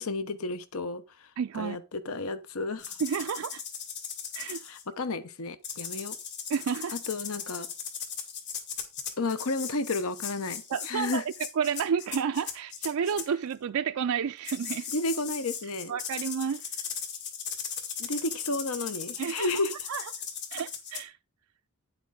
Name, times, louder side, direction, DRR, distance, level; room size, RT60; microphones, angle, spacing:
voice 1, 0.0-1.3 1.5-3.0 4.5-6.2 6.9-7.7 9.2-11.2 14.9-15.9 18.0-19.7, left 3 dB, 70° left, 0.9 m, -32 dB
voice 2, 1.4-1.8 3.0-3.6 4.3-4.6 6.5-7.0 10.7-14.9 15.9-16.6 19.2-19.5 19.9-20.0 20.5-21.2, right 7 dB, 65° right, 0.4 m, -30 dB
sound 1, 2.8-4.8 5.6-13.3 14.4-21.0, left 7 dB, 50° left, 2.1 m, -38 dB
9.6 x 7.9 x 3.7 m
head